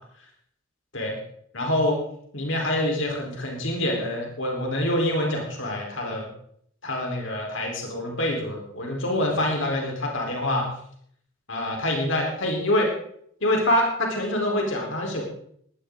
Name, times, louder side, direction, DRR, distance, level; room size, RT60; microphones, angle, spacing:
voice 1, 1.5-2.0 2.3-6.3 6.8-10.7 11.5-12.9 13.4-15.2, left 1 dB, 65° left, 0 dB, 4.3 m, -25 dB
18.5 x 12.0 x 3.9 m, 0.65 s
head